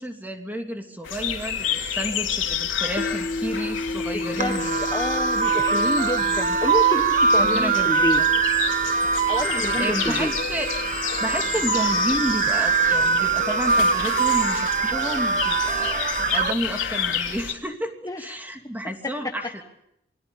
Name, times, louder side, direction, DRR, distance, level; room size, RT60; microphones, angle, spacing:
voice 1, 0.0-4.9 7.4-8.2 9.8-10.7 11.2-16.0 16.3-19.6, equal, 10° right, 4 dB, 2.9 m, -31 dB
sound 1, 1.0-17.5, left 7 dB, 80° left, 3.2 m, -30 dB
sound 2, 3.0-15.1, left 2 dB, 40° left, 1.3 m, -35 dB
voice 2, 4.1-8.2 9.3-10.3 18.0-18.4 18.8-19.3, left 1 dB, 20° left, 5 dB, 1.2 m, -29 dB
sound 3, 4.4-16.5, right 5 dB, 45° right, 1.1 m, -23 dB
28.5 x 22.0 x 7.1 m, 0.79 s
head